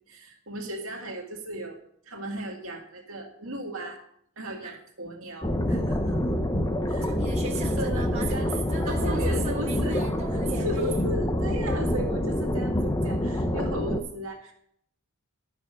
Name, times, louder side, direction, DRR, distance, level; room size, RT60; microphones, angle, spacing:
voice 1, 0.1-4.0 4.4-6.3 6.9-7.1 7.8-8.5 8.9-10.0 10.6-14.5, right 1 dB, 65° right, 1 dB, 2.1 m, -36 dB
sound 1, 5.4-14.0, left 1 dB, 15° left, 0.8 m, -26 dB
voice 2, 6.9-11.0, right 3 dB, 30° right, -2 dB, 1.3 m, -38 dB
12.0 x 6.3 x 6.3 m, 0.68 s
head